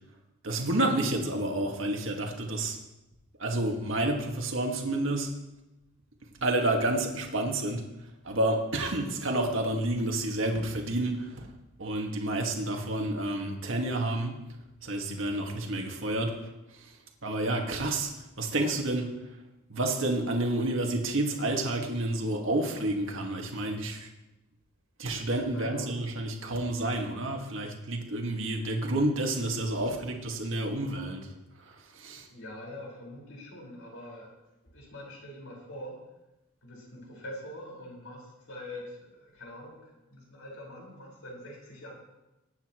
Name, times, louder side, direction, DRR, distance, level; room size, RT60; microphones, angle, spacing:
voice 1, 0.4-2.8 3.4-5.3 6.4-7.8 8.2-11.5 11.8-14.4 14.8-16.4 17.2-18.1 18.4-19.1 19.7-24.1 25.0-31.3 31.7-32.3, right 1 dB, 70° right, 2 dB, 1.9 m, -29 dB
voice 2, 25.4-25.9 32.3-34.3 34.7-36.0 36.6-41.9, left 1 dB, 80° left, -2 dB, 4.9 m, -44 dB
21.0 x 9.8 x 3.1 m, 0.97 s
head